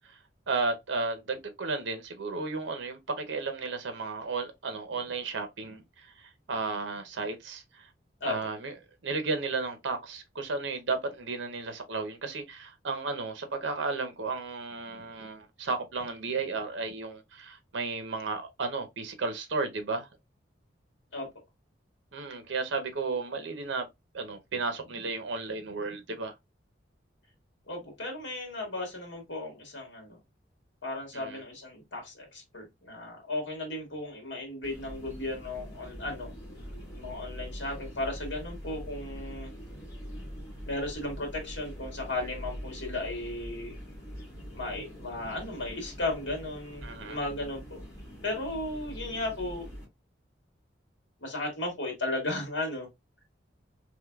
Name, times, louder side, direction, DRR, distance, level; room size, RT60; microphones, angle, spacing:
voice 1, 0.5-7.9 8.2-8.7 9.0-20.1 22.1-23.9 24.1-26.3 31.1-31.4 46.8-47.2, right 3 dB, 75° right, 0.7 m, -33 dB
voice 2, 27.7-30.2 30.8-36.3 37.0-39.5 40.7-43.7 44.5-47.8 48.2-49.7 51.2-52.9, left 2 dB, 75° left, 1.8 m, -35 dB
sound 1, 34.6-49.8, equal, 20° left, 2.1 m, -43 dB
3.6 x 3.1 x 2.2 m
head